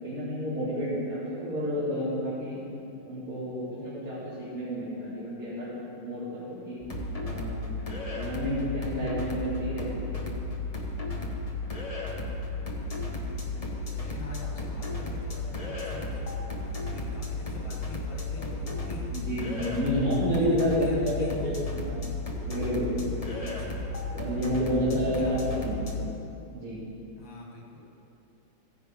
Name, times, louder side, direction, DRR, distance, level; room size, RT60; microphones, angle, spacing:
voice 1, 0.0-2.6 3.0-5.7 6.0-6.8 7.2-7.8 8.1-10.3 19.1-22.0 22.4-23.3 24.1-26.1 26.5-26.8, equal, 45° right, -12 dB, 3.2 m, -30 dB
sound 1, 6.8-26.0, left 2 dB, 25° left, 1.0 m, -34 dB
voice 2, 13.2-19.1 19.5-19.9 20.2-21.4 23.3-24.0 25.0-25.5 27.2-27.8, left 2 dB, 80° left, -3 dB, 2.8 m, -45 dB
16.0 x 10.5 x 3.9 m, 2.7 s
omnidirectional pair, 2.2 m